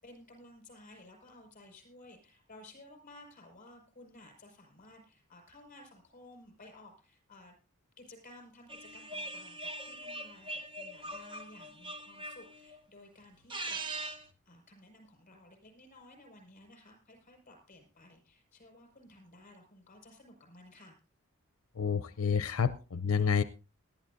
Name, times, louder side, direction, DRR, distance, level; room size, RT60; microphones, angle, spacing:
voice 1, 0.0-7.5 8.0-13.8 14.4-21.0, left 1 dB, 35° left, 3 dB, 5.2 m, -55 dB
sound 1, 8.7-12.8 13.3-14.3, right 2 dB, 20° right, 1.0 m, -42 dB
voice 2, 21.8-23.4, left 6 dB, 75° left, 12 dB, 0.6 m, -29 dB
19.5 x 13.0 x 2.6 m, 0.33 s
head